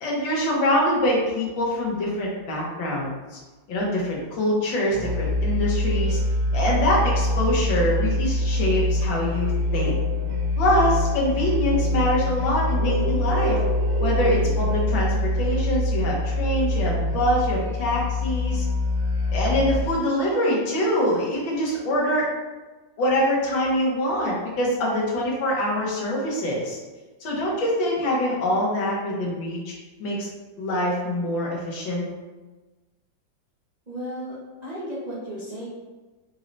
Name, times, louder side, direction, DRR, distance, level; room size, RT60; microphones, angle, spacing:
voice 1, 0.0-3.1 3.7-6.2 6.5-10.0 10.6-13.6 14.0-18.6 19.3-22.3 23.0-26.8 27.2-29.7 30.0-30.3 30.6-32.0, left 1 dB, 85° left, -3 dB, 1.8 m, -24 dB
Musical instrument, 4.9-19.9, left 1 dB, 70° right, 1.6 m, -24 dB
voice 2, 33.9-35.7, equal, 45° right, -8 dB, 0.5 m, -34 dB
5.3 x 3.1 x 2.6 m, 1.2 s
omnidirectional pair, 2.0 m